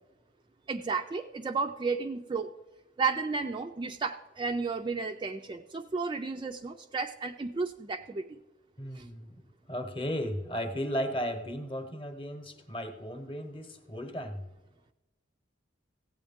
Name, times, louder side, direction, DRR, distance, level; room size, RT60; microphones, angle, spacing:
voice 1, 0.7-2.5 3.0-8.4 8.9-9.1, right 4 dB, 25° right, 6 dB, 0.3 m, -33 dB
voice 2, 8.8-9.4 9.7-14.4, equal, 25° left, 7 dB, 0.9 m, -35 dB
15.5 x 8.5 x 3.6 m, 1.0 s
head